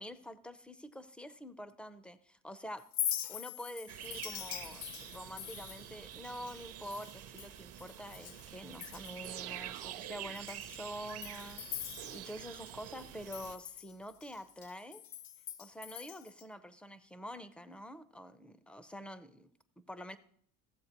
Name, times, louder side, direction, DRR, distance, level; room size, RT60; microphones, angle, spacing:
voice 1, 0.0-2.9 3.3-11.6 12.1-15.0 15.6-20.2, equal, 5° left, 13 dB, 0.4 m, -47 dB
Chink clink, 2.8-8.5 8.7-9.3 9.8-9.9 10.3-12.7 13.0-16.4, left 11 dB, 60° left, 0.7 m, -43 dB
sound 1, 3.9-13.6, right 12 dB, 50° right, 0.6 m, -48 dB
sound 2, 9.2-10.5 12.0-13.3, right 13 dB, 80° right, 0.8 m, -48 dB
15.0 x 7.5 x 2.9 m, 0.65 s
cardioid pair, 130°, 32 cm